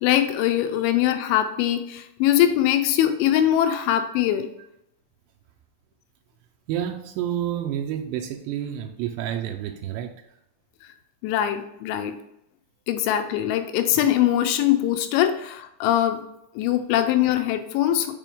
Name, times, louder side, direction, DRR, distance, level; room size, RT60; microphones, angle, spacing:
voice 1, 0.0-4.5 11.2-12.1 12.9-16.2 16.6-18.1, left 11 dB, 80° left, 7 dB, 2.8 m, -22 dB
voice 2, 6.7-10.4 16.9-17.0, right 10 dB, 85° right, 3 dB, 2.5 m, -30 dB
7.6 x 4.6 x 3.5 m, 0.83 s
omnidirectional pair, 5.6 m